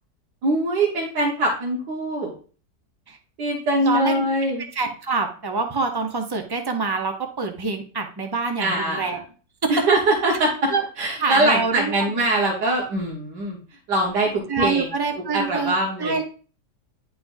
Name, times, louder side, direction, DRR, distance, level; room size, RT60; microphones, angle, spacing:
voice 1, 0.4-2.3 3.4-4.6 8.6-9.1 9.7-10.7 11.0-13.6 13.9-14.3 14.6-14.9 15.3-16.2, right 1 dB, 85° right, -3 dB, 1.8 m, -22 dB
voice 2, 3.8-4.2 4.7-9.2 10.7-10.8 11.2-12.2 14.5-16.2, right 4 dB, 35° right, 4 dB, 0.3 m, -26 dB
10.0 x 4.3 x 2.6 m, 0.38 s
omnidirectional pair, 1.8 m